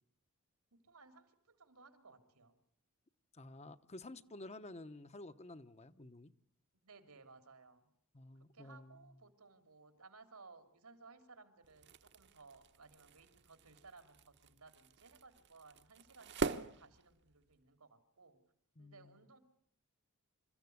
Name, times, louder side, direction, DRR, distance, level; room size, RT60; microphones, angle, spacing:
voice 1, 0.7-2.5 6.8-7.9 8.5-18.4 18.8-19.4, right 4 dB, 85° right, 3.4 m, -60 dB
voice 2, 3.3-6.3 8.1-9.1 18.8-19.2, left 2 dB, 30° left, 0.9 m, -52 dB
crumble-bang, 11.6-17.6, right 4 dB, 55° right, 1.1 m, -44 dB
27.5 x 14.5 x 9.5 m
head